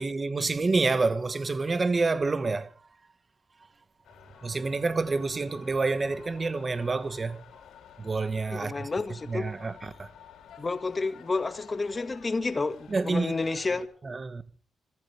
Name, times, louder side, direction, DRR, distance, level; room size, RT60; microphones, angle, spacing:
voice 1, 0.0-2.7 4.4-7.4 8.0-8.9 9.3-10.1 12.9-13.4 14.0-14.4, right 3 dB, 35° right, 1.5 m, -28 dB
sound 1, 4.0-13.9, left 8 dB, 90° left, 5.0 m, -52 dB
voice 2, 8.5-9.4 10.6-13.8, left 3 dB, 30° left, 1.9 m, -30 dB
26.5 x 14.5 x 3.5 m
cardioid pair, 95°, 0 cm